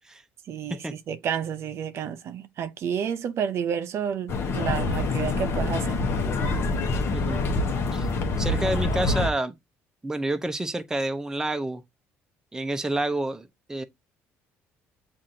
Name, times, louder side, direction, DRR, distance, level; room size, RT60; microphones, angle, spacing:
voice 1, 0.5-6.0, right 8 dB, 55° right, 0.5 m, -30 dB
sound 1, 4.3-9.3, left 3 dB, 50° left, 0.9 m, -26 dB
voice 2, 8.4-9.6 10.0-11.8 12.5-13.8, right 1 dB, 10° right, 0.6 m, -28 dB
7.3 x 2.5 x 2.7 m
cardioid pair, 105°, 5 cm